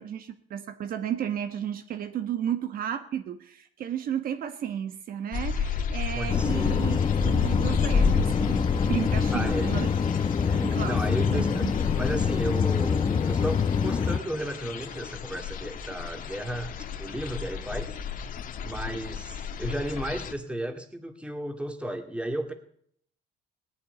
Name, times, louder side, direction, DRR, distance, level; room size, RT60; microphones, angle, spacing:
voice 1, 0.0-8.6 8.9-9.9 10.5-11.0 11.3-11.7, right 9 dB, 60° right, 9 dB, 1.2 m, -33 dB
sound 1, 5.3-20.3, left 6 dB, 55° left, 1.5 m, -32 dB
voice 2, 6.1-6.9 9.3-9.7 10.4-11.7 11.9-18.0 18.6-22.5, right 1 dB, 5° right, 5 dB, 2.1 m, -34 dB
sound 2, 6.3-14.2, left 6 dB, 30° left, 1.0 m, -25 dB
17.5 x 7.2 x 9.9 m, 0.66 s
cardioid pair, 110°, 17 cm